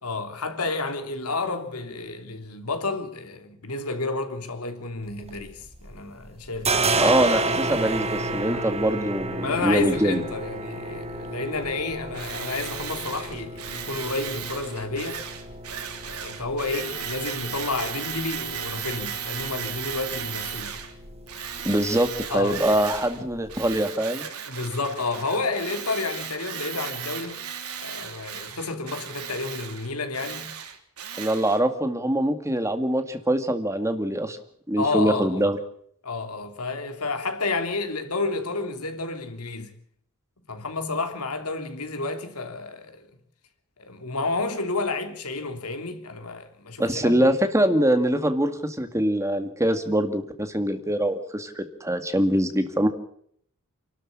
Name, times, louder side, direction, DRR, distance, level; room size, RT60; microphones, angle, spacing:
voice 1, 0.0-6.9 8.5-8.7 9.4-15.2 16.1-20.8 22.3-22.6 24.4-27.4 27.8-30.5 34.8-35.4 36.0-39.7 40.5-43.1 43.8-47.2, left 3 dB, 85° left, 3.3 m, -30 dB
sound 1, 5.1-6.0 6.3-23.8, right 3 dB, 30° right, 2.0 m, -32 dB
voice 2, 7.0-10.2 21.6-24.3 31.2-34.4 34.7-35.6 46.8-52.9, right 1 dB, 15° right, 2.0 m, -23 dB
Tools, 12.1-20.9 21.3-23.2 23.5-31.6, right 8 dB, 85° right, 3.4 m, -36 dB
28.5 x 12.5 x 8.6 m
head